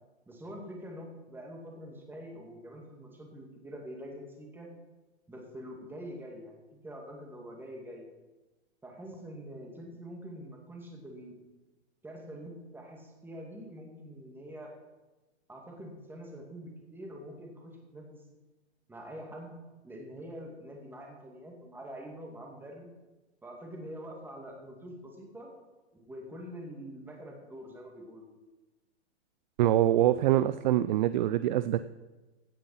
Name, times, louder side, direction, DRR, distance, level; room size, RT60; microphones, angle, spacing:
voice 1, 0.3-4.7 5.3-8.1 8.8-11.4 12.0-14.7 15.5-18.2 18.9-19.6 19.8-22.9 23.4-25.5 25.9-28.3, equal, 5° right, 0 dB, 2.3 m, -45 dB
voice 2, 29.6-31.8, right 13 dB, 45° right, 13 dB, 0.4 m, -24 dB
16.5 x 7.5 x 5.7 m, 1.2 s
hypercardioid pair, 140°, 34 cm